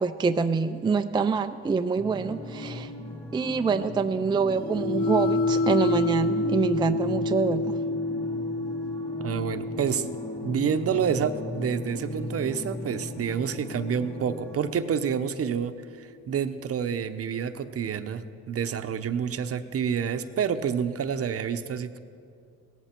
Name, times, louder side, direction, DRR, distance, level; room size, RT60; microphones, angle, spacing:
voice 1, 0.0-2.9 3.3-7.8, right 5 dB, 15° right, 8 dB, 0.4 m, -26 dB
sound 1, 1.9-14.7, left 1 dB, 20° left, 3.6 m, -38 dB
sound 2, 4.5-14.5, left 2 dB, 85° left, 1.0 m, -30 dB
voice 2, 9.2-10.1 10.4-22.0, right 7 dB, 50° right, 10 dB, 0.8 m, -28 dB
17.5 x 14.0 x 4.4 m, 2.4 s
cardioid pair, 90°, 30 cm